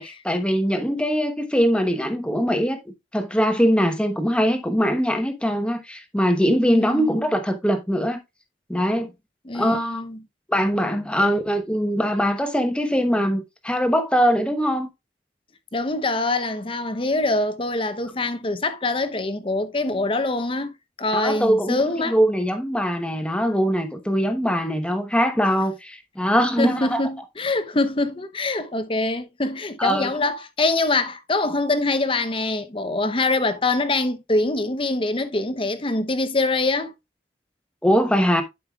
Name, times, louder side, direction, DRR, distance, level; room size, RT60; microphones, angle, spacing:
voice 1, 0.0-2.8 3.1-8.2 8.7-9.1 9.5-10.1 10.5-14.9 21.1-27.0 29.8-30.1 37.8-38.4, equal, 5° left, 1.0 m, -22 dB
voice 2, 6.7-7.2 9.4-10.2 11.2-11.4 15.7-20.7 21.0-22.2 26.6-36.9, left 2 dB, 30° left, 0.8 m, -24 dB
11.5 x 5.5 x 2.3 m
head